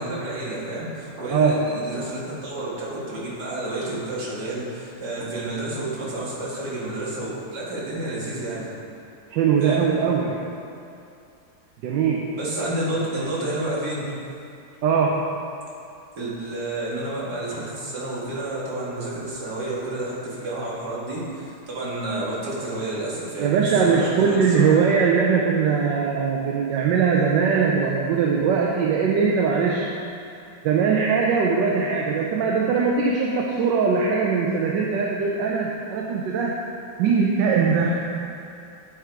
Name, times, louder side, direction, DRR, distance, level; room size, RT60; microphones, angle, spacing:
voice 1, 0.0-8.7 9.6-9.9 12.3-14.1 16.2-24.8, right 1 dB, 65° right, -7 dB, 2.3 m, -30 dB
voice 2, 9.3-10.4 11.8-12.3 14.8-15.3 23.4-29.9 30.6-36.6 37.0-38.0, right 5 dB, 80° right, -1 dB, 1.3 m, -21 dB
10.0 x 5.0 x 4.6 m, 2.6 s
omnidirectional pair, 1.9 m